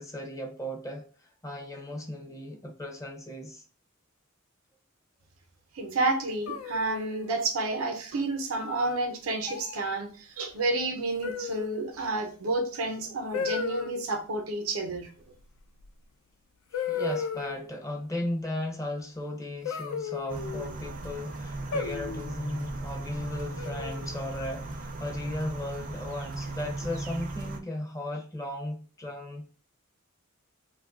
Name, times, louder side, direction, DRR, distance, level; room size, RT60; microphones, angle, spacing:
voice 1, 0.0-3.6 16.7-29.4, left 1 dB, 15° left, 0.4 m, -36 dB
voice 2, 5.7-15.1, right 2 dB, 85° right, 0.7 m, -30 dB
sound 1, 6.5-7.3 8.6-9.0 9.4-9.8 11.2-11.8 13.3-13.9 15.8-15.9 16.7-17.7 19.6-20.7 21.7-22.3 23.6-24.2, left 5 dB, 90° left, 0.3 m, -34 dB
sound 2, 20.3-27.6, right 2 dB, 40° right, 0.4 m, -37 dB
2.5 x 2.3 x 3.6 m
head